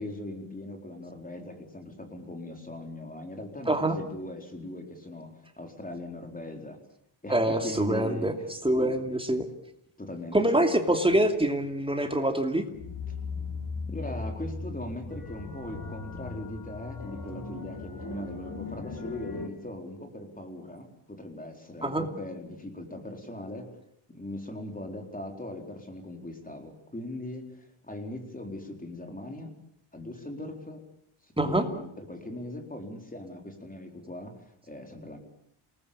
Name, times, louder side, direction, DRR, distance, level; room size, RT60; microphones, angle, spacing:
voice 1, 0.0-6.8 7.2-8.3 8.7-9.0 10.0-10.7 13.9-23.7 24.1-29.5 29.9-30.8 31.2-35.2, left 1 dB, 15° left, 3 dB, 4.3 m, -40 dB
voice 2, 3.7-4.0 7.3-8.3 8.6-9.5 10.3-12.6 21.8-22.1 31.4-31.6, right 1 dB, 10° right, 5 dB, 2.7 m, -25 dB
sound 1, 12.7-19.5, left 3 dB, 40° left, 3.2 m, -38 dB
28.5 x 20.0 x 8.8 m, 0.74 s
wide cardioid pair, 160°, 49 cm